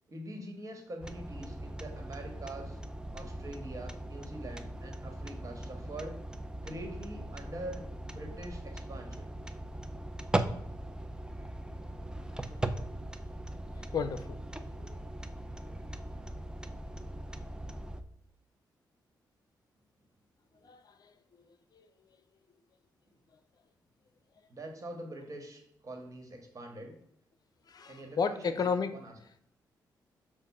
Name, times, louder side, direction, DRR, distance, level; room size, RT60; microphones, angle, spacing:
voice 1, 0.1-2.8 3.1-6.2 6.6-9.4 15.7-15.9 20.5-20.6 24.5-27.0 27.9-28.5 28.9-29.1, right 1 dB, 45° right, 4 dB, 1.6 m, -44 dB
sound 1, 1.0-18.0, right 1 dB, 10° right, 0.6 m, -39 dB
voice 2, 13.9-14.4 20.6-21.1 27.7-28.9, left 5 dB, 55° left, 11 dB, 0.6 m, -32 dB
7.2 x 2.5 x 5.5 m, 0.71 s
cardioid pair, 65°, 8 cm